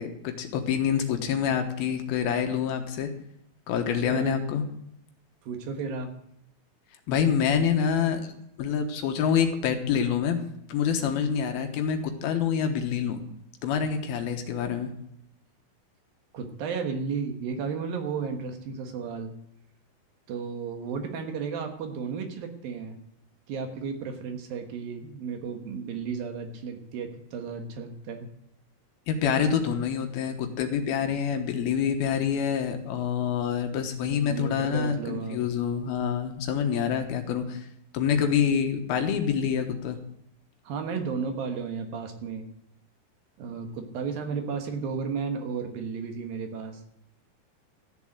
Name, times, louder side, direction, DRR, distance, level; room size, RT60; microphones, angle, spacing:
voice 1, 0.0-3.1 3.7-4.6 7.1-8.3 8.6-10.4 10.7-13.2 13.6-14.9 29.1-37.7 37.9-40.0, left 7 dB, 75° left, 6 dB, 3.0 m, -26 dB
voice 2, 3.8-4.5 5.4-6.1 16.3-19.3 20.3-23.0 23.5-28.3 34.3-35.4 40.6-42.5 43.4-46.8, right 5 dB, 70° right, 5 dB, 3.1 m, -33 dB
14.0 x 7.1 x 7.8 m, 0.77 s
omnidirectional pair, 4.4 m